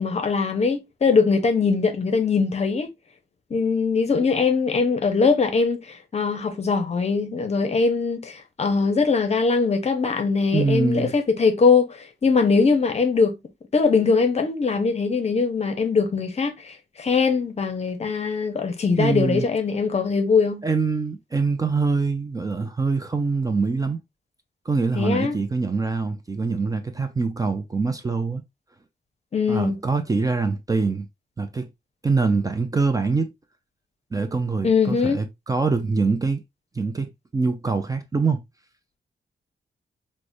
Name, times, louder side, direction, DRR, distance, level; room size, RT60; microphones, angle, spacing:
voice 1, 0.0-2.9 3.5-13.3 13.7-20.6 24.9-25.4 29.3-29.8 34.6-35.2, left 4 dB, 40° left, 0.6 m, -21 dB
voice 2, 10.5-11.1 19.0-19.4 20.6-24.0 24.7-28.4 29.5-31.1 31.4-31.7 32.0-33.3 34.1-36.4 36.8-38.4, right 4 dB, 20° right, 0.4 m, -24 dB
4.7 x 2.1 x 2.5 m
wide cardioid pair, 135°, 17 cm